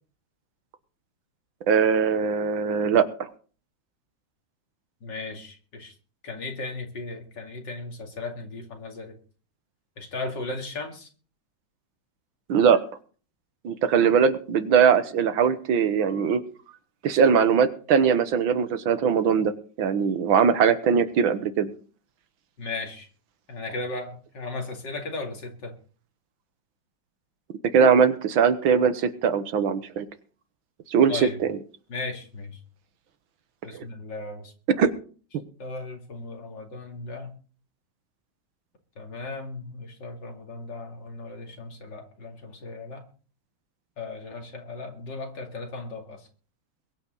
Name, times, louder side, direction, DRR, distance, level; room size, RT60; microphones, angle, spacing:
voice 1, 1.7-3.3 12.5-12.8 13.6-16.4 17.0-21.7 27.7-30.1 30.9-31.6 33.7-33.9 34.8-34.9, right 7 dB, 85° right, 11 dB, 2.0 m, -21 dB
voice 2, 5.0-5.9 6.2-9.1 10.0-11.1 22.6-23.1 23.5-25.7 31.1-31.4 31.9-32.6 33.6-34.5 35.6-37.3 39.0-43.0 44.0-46.2, left 3 dB, 65° left, 2 dB, 3.2 m, -36 dB
22.0 x 8.9 x 4.0 m, 0.40 s
omnidirectional pair, 2.1 m